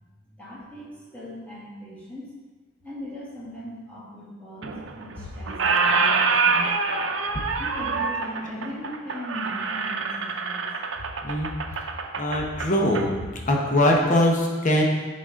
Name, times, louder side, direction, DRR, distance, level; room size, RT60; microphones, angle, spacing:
voice 1, 0.2-2.3 2.8-6.7 7.6-10.7, equal, 10° left, -9 dB, 2.3 m, -39 dB
Squeak, 4.6-5.2 5.5-13.1, right 4 dB, 75° right, 0.6 m, -26 dB
voice 2, 12.2-14.8, left 1 dB, 40° left, -1 dB, 1.0 m, -22 dB
9.9 x 4.2 x 3.7 m, 1.3 s
head